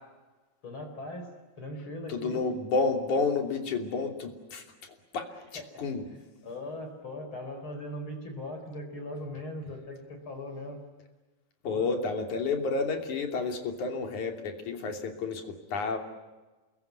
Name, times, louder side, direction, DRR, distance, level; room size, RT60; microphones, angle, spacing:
voice 1, 0.6-2.4 5.3-5.8 6.4-10.8 11.6-11.9, left 1 dB, 40° left, 5 dB, 5.0 m, -40 dB
voice 2, 2.1-4.6 5.1-6.1 11.6-16.0, left 4 dB, 70° left, 4 dB, 4.4 m, -30 dB
28.5 x 22.0 x 9.5 m, 1.2 s
omnidirectional pair, 3.5 m